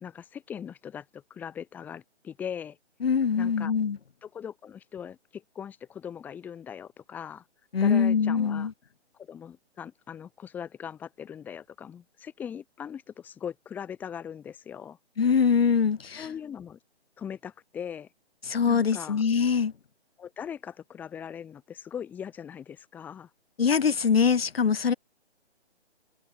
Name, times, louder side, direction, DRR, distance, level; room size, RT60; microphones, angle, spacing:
voice 1, 0.0-2.8 3.4-3.7 4.2-7.4 7.8-8.7 9.2-15.0 16.2-16.8 17.2-18.1 18.7-19.2 20.2-23.3, left 8 dB, 5° left, 1.6 m, -40 dB
voice 2, 3.0-4.0 7.7-8.7 15.2-16.3 18.5-19.7 23.6-24.9, left 6 dB, 60° left, 2.3 m, -23 dB
hypercardioid pair, 165°, 34 cm